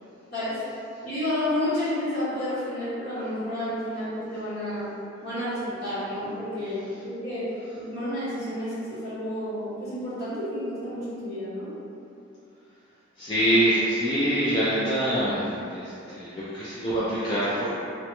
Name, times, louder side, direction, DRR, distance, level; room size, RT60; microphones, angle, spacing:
voice 1, 0.3-0.6 1.0-4.9 5.2-11.7, left 1 dB, 50° left, -12 dB, 1.2 m, -30 dB
voice 2, 13.2-15.4 15.7-17.7, right 1 dB, 25° left, -10 dB, 0.3 m, -25 dB
3.3 x 2.1 x 2.9 m, 2.7 s
head